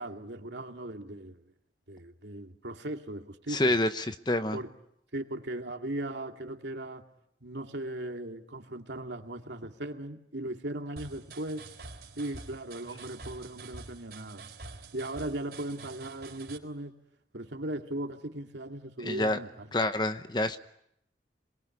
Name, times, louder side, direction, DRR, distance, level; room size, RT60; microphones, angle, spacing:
voice 1, 0.0-1.4 1.9-3.8 4.5-4.7 5.1-7.0 7.4-11.7 12.2-14.4 14.9-16.9 17.3-19.7, right 1 dB, 80° right, 2.4 m, -38 dB
voice 2, 3.5-4.6 19.0-19.4 19.7-20.6, left 1 dB, 25° left, 1.0 m, -27 dB
sound 1, 11.0-16.6, right 3 dB, 60° right, 4.0 m, -47 dB
27.0 x 22.0 x 9.6 m
head